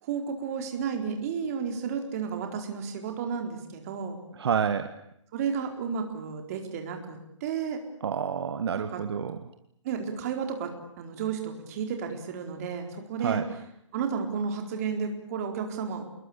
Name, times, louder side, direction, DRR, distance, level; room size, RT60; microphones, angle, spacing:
voice 1, 0.0-4.2 5.3-7.8 8.7-9.0 9.8-13.4 13.9-16.0, right 6 dB, 30° right, 5 dB, 4.2 m, -32 dB
voice 2, 4.4-4.9 8.0-9.4 13.2-13.5, right 7 dB, 55° right, 9 dB, 1.8 m, -28 dB
27.5 x 21.5 x 8.7 m, 0.75 s
hypercardioid pair, 165°, 16 cm